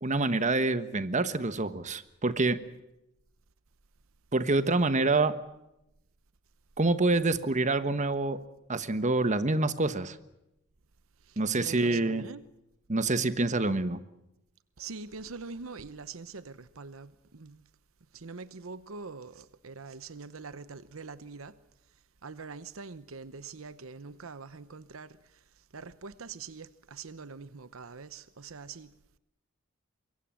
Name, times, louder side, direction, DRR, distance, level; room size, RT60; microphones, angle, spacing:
voice 1, 0.0-2.6 4.3-5.3 6.8-8.4 8.7-10.2 11.4-12.3 12.9-14.0, right 2 dB, 35° right, 1.3 m, -26 dB
voice 2, 11.3-12.4 14.8-17.6 18.1-21.6 22.2-25.2 25.7-28.9, right 4 dB, 80° right, 0.9 m, -44 dB
24.5 x 23.0 x 7.6 m
head